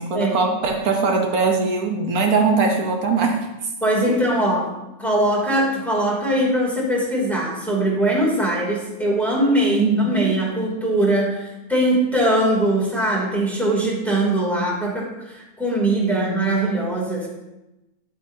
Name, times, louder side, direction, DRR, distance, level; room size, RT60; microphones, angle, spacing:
voice 1, 0.0-3.4 9.7-10.3 16.0-16.5, right 4 dB, 75° right, 2 dB, 1.4 m, -21 dB
voice 2, 3.8-4.7 5.0-17.3, right 1 dB, ahead, -5 dB, 2.8 m, -21 dB
10.5 x 8.7 x 2.8 m, 0.99 s
omnidirectional pair, 1.5 m